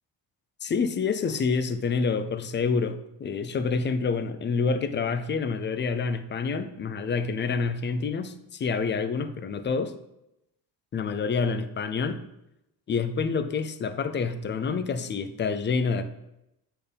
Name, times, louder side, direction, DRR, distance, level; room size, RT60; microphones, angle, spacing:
voice 1, 0.6-9.9 10.9-12.2 12.9-16.0, left 5 dB, 30° left, 10 dB, 0.4 m, -27 dB
8.6 x 4.4 x 5.2 m, 0.86 s
cardioid pair, 170°, 42 cm